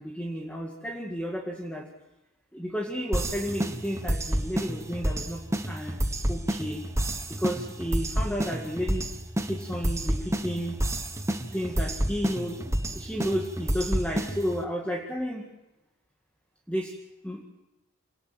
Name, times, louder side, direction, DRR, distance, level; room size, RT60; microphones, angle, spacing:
voice 1, 0.0-1.9 2.5-6.0 6.3-6.8 7.4-9.1 9.4-10.8 11.5-15.5 16.7-16.9 17.2-17.4, equal, 5° left, 0 dB, 2.1 m, -32 dB
sound 1, 3.1-14.6, right 1 dB, 15° right, 1.3 m, -30 dB
27.0 x 19.0 x 7.7 m, 1.0 s
head